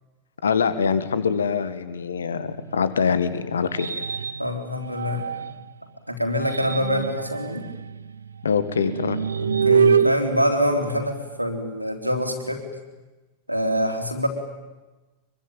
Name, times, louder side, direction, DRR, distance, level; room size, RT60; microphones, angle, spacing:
voice 1, 0.4-4.0 8.4-9.2, left 6 dB, 70° left, 13 dB, 1.6 m, -24 dB
sound 1, 2.6-5.7 6.2-11.4, right 6 dB, 75° right, 0.8 m, -26 dB
voice 2, 4.4-5.3 6.1-7.6 9.4-12.6 13.5-14.3, equal, 90° right, 4 dB, 3.6 m, -25 dB
25.0 x 23.0 x 9.3 m, 1.2 s
figure-of-eight pair, 90°, 0 cm